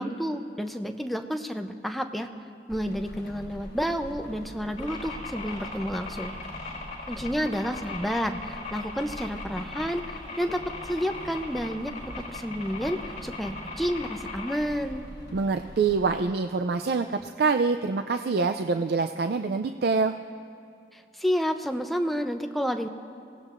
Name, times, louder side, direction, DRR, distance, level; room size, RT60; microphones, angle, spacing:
voice 1, 0.0-2.3 2.7-6.3 7.1-15.1 20.9-22.9, equal, ahead, 5 dB, 0.6 m, -30 dB
Rain, 2.7-16.3, equal, 60° left, 2.9 m, -44 dB
sound 1, 4.8-14.6, left 3 dB, 45° left, 4.7 m, -39 dB
voice 2, 15.3-20.2, right 4 dB, 60° right, 7 dB, 0.4 m, -25 dB
25.0 x 17.5 x 2.5 m, 2.6 s
head